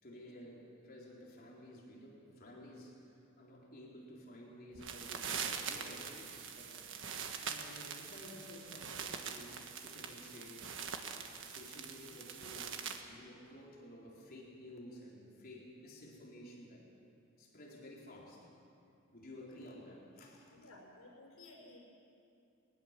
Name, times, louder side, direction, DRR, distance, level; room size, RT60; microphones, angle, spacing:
voice 1, 0.0-10.7 11.2-16.8 17.4-18.5 19.1-20.5, left 1 dB, 45° left, -3 dB, 3.9 m, -53 dB
sound 1, 4.7-13.0, right 6 dB, 65° right, 1.5 m, -43 dB
voice 2, 20.5-21.8, left 2 dB, 85° left, -1 dB, 5.4 m, -56 dB
21.0 x 19.5 x 7.4 m, 2.6 s
head